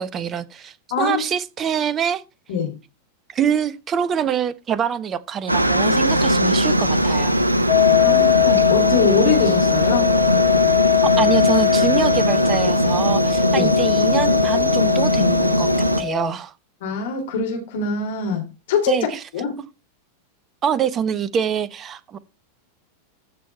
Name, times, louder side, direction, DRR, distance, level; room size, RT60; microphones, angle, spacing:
voice 1, 0.0-2.2 3.3-7.4 11.0-16.5 18.9-19.2 20.6-22.2, right 8 dB, 25° right, 1.0 m, -25 dB
voice 2, 0.9-1.2 2.5-2.7 7.9-10.1 13.5-13.7 16.8-18.9 19.3-19.6, left 5 dB, 55° left, 3.1 m, -23 dB
Aircraft, 5.5-16.0, right 1 dB, 85° right, 0.9 m, -19 dB
sound 1, 7.7-16.3, left 18 dB, 40° left, 2.7 m, -21 dB
14.0 x 6.6 x 4.4 m
figure-of-eight pair, 90°, 0 cm